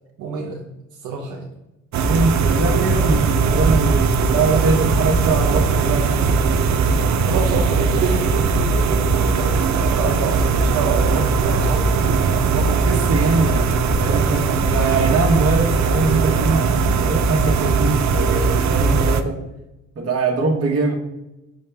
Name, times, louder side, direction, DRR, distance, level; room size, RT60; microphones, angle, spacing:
voice 1, 0.2-0.6 0.9-1.5 7.3-12.7, right 4 dB, 90° right, -1 dB, 0.9 m, -28 dB
sound 1, 1.9-19.2, right 4 dB, 65° right, 0.7 m, -19 dB
voice 2, 2.0-6.6 12.5-19.4 20.0-20.9, right 3 dB, 50° right, 2 dB, 1.4 m, -22 dB
6.3 x 5.6 x 3.5 m, 0.93 s
cardioid pair, 90°, 30 cm